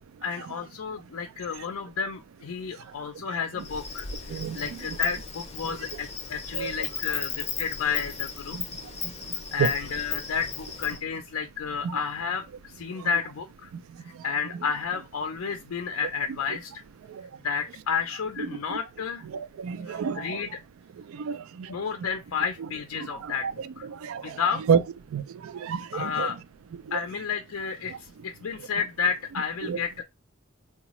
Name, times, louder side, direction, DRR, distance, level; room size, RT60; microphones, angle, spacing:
voice 1, 0.2-8.6 9.5-13.7 14.2-16.8 17.4-19.3 19.9-20.5 21.7-23.5 23.8-23.9 24.2-24.6 25.9-26.4 26.9-30.0, left 6 dB, 85° left, 0.4 m, -31 dB
Insect, 3.6-11.0, left 6 dB, 30° left, 0.5 m, -36 dB
voice 2, 4.3-4.8 5.6-6.0 6.5-6.7 8.5-8.6 9.6-9.7 11.8-12.0 13.0-13.1 17.1-17.3 18.4-18.8 19.2-20.4 21.1-21.7 22.0-22.1 23.0-24.8 25.1-26.4 26.9-27.0 27.9-28.0 29.6-29.8, right 6 dB, 85° right, 0.3 m, -30 dB
3.9 x 2.2 x 2.9 m
head